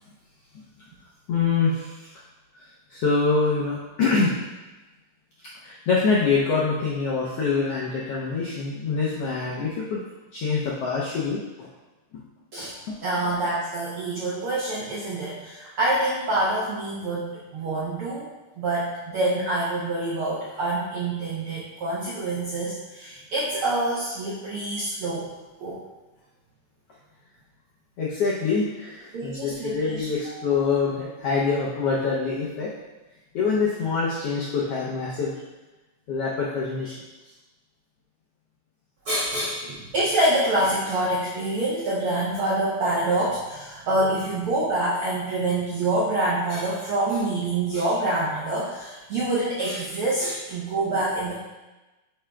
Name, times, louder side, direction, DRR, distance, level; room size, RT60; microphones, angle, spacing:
voice 1, 1.3-2.1 2.6-4.3 5.6-10.0 10.3-11.7 12.1-12.2 12.9-13.0 28.0-32.7 33.3-35.3 36.1-37.0, left 4 dB, 90° left, -5 dB, 1.3 m, -25 dB
voice 2, 13.0-18.3 18.6-25.3 25.6-25.8 29.1-30.3 39.0-51.3, right 2 dB, 80° right, -7 dB, 1.2 m, -26 dB
8.9 x 4.9 x 2.3 m, 1.1 s
omnidirectional pair, 3.6 m